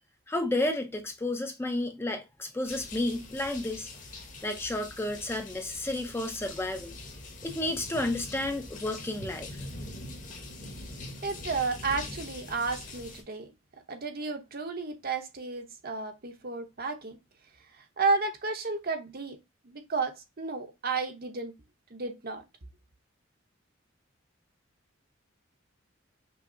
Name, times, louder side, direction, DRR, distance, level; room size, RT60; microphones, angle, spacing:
voice 1, 0.3-3.9 4.4-7.0 7.4-9.6, left 1 dB, 10° left, 0.6 m, -31 dB
sound 1, 2.6-13.2, left 2 dB, 40° left, 1.2 m, -43 dB
voice 2, 11.2-13.5 13.9-17.2 17.7-19.4 19.6-21.5 21.9-22.4, right 4 dB, 50° right, 0.9 m, -32 dB
5.7 x 2.0 x 3.8 m
head